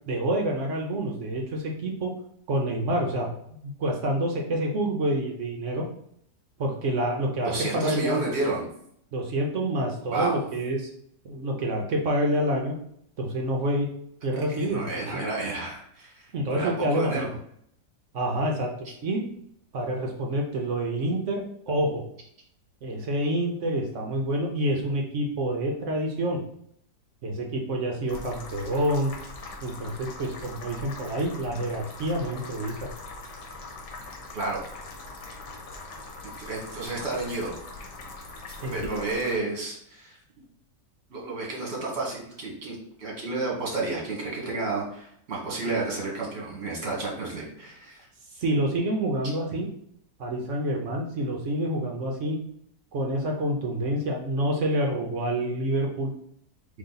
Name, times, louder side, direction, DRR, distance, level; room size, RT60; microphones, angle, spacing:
voice 1, 0.1-2.1 2.5-3.3 3.6-5.9 6.6-8.2 9.1-10.9 11.2-12.8 13.2-13.9 14.2-15.0 16.3-17.3 18.1-19.2 19.7-22.1 22.8-26.4 27.2-29.1 29.6-32.8 38.6-38.7 45.6-45.8 48.3-49.7 50.2-52.4 52.9-56.1, right 1 dB, 60° right, 0 dB, 0.8 m, -27 dB
voice 2, 7.4-8.7 10.1-10.4 14.5-17.3 34.3-34.6 36.2-37.6 38.6-40.2 41.1-48.1, right 3 dB, 40° right, -3 dB, 1.5 m, -31 dB
sound 1, 28.1-39.4, left 2 dB, 65° left, 1.4 m, -41 dB
3.9 x 3.1 x 3.9 m, 0.70 s
omnidirectional pair, 1.9 m